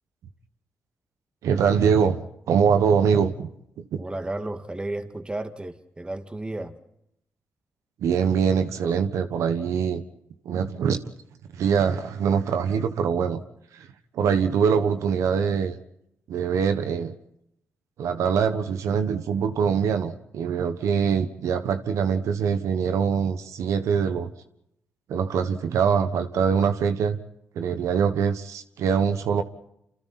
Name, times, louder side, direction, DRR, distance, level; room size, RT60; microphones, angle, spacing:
voice 1, 1.4-3.5 3.8-4.0 8.0-10.0 10.4-11.1 11.5-13.4 13.7-13.9 14.1-15.8 16.3-17.1 18.0-24.3 25.1-27.2 27.5-29.4, right 6 dB, 85° right, 8 dB, 1.3 m, -23 dB
voice 2, 4.0-6.8, right 2 dB, 20° right, 7 dB, 2.1 m, -33 dB
28.0 x 28.0 x 4.3 m, 0.78 s
cardioid pair, 75°, 5 cm